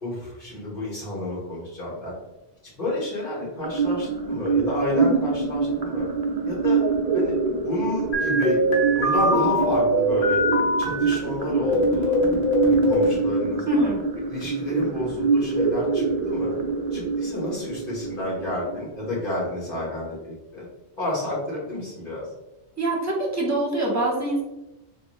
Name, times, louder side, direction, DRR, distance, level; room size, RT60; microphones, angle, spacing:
voice 1, 0.0-2.1 2.8-6.1 6.4-6.8 7.1-7.4 7.6-8.6 9.0-10.4 10.8-12.2 12.6-13.9 14.3-16.6 16.9-20.6 21.0-22.3, left 1 dB, 50° left, -6 dB, 1.5 m, -30 dB
sound 1, 3.6-19.6, right 4 dB, 55° right, 0.4 m, -25 dB
sound 2, 8.1-11.1 11.6-13.2, equal, 70° left, 1.0 m, -22 dB
voice 2, 13.7-14.0 22.8-24.4, right 1 dB, 15° right, -3 dB, 0.8 m, -24 dB
3.6 x 2.3 x 3.0 m, 0.97 s
omnidirectional pair, 1.2 m